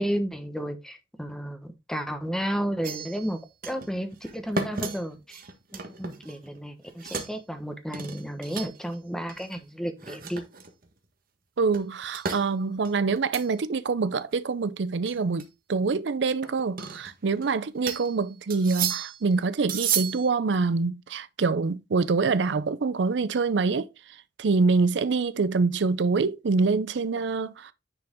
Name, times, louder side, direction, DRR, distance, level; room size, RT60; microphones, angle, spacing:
voice 1, 0.0-5.4 5.7-10.4, equal, 5° left, 1.1 m, -32 dB
sound 1, 2.8-3.3 3.6-3.9 4.2-6.6 6.9-7.4 7.9-8.9 9.3-9.6 10.0-10.9 11.7-12.4 12.8-13.5 13.9-14.0 14.3-14.4 15.1-15.4 16.4-17.5 17.9-18.1 18.5-19.3 19.7-20.3, right 6 dB, 50° right, 1.4 m, -33 dB
voice 2, 11.6-23.9 24.4-27.7, right 4 dB, 75° right, 0.5 m, -25 dB
9.8 x 4.8 x 3.6 m
head